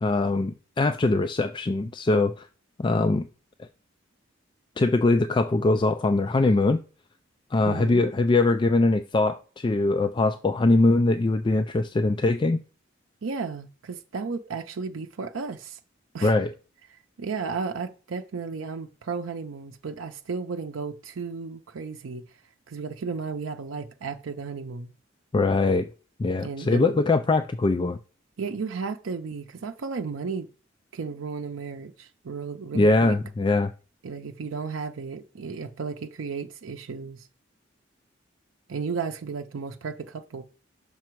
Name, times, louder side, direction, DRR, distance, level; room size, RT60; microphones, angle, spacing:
voice 1, 0.0-2.5 2.8-3.3 3.6-3.7 4.8-6.8 7.5-12.6 16.2-16.5 25.3-25.9 26.2-28.0 32.7-33.7, left 2 dB, 25° left, 0.3 m, -22 dB
voice 2, 7.7-8.1 13.2-15.8 16.1-16.3 16.9-22.2 22.7-24.9 26.4-27.0 28.4-30.5 30.9-33.2 34.0-37.3 38.7-40.4, right 5 dB, 85° right, 0.5 m, -34 dB
5.9 x 5.3 x 4.5 m
head